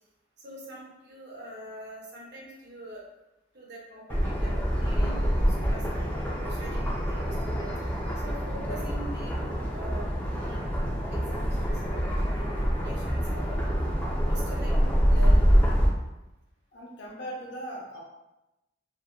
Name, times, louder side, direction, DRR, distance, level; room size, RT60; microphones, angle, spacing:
voice 1, 0.4-3.0 3.5-7.8 8.2-10.7 11.1-12.0 12.3-13.6 14.2-14.7 15.1-15.5, right 1 dB, 60° right, -4 dB, 0.7 m, -44 dB
sound 1, 4.1-15.9, equal, 10° left, 0.3 m, -26 dB
voice 2, 16.7-18.0, right 1 dB, 65° left, -3 dB, 0.7 m, -39 dB
2.6 x 2.1 x 2.3 m, 0.95 s
head